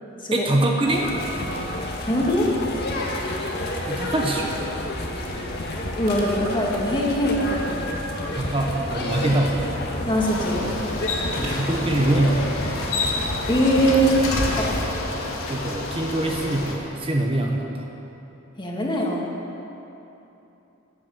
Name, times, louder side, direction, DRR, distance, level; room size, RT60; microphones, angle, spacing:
voice 1, 0.3-1.0 3.9-4.5 8.4-9.6 11.4-12.4 15.5-17.8, right 1 dB, 25° right, 0 dB, 1.0 m, -23 dB
sound 1, 0.9-14.9, left 1 dB, 55° left, 1.8 m, -30 dB
sound 2, 1.1-14.8, right 1 dB, 85° right, 2.7 m, -40 dB
voice 2, 2.1-2.5 6.0-7.9 10.1-10.7 13.5-14.2 14.5-14.8 18.6-19.3, equal, 25° left, -2 dB, 2.1 m, -22 dB
Bicycle, 10.2-16.7, left 2 dB, 85° left, 2.0 m, -30 dB
14.5 x 10.5 x 6.9 m, 3.0 s
head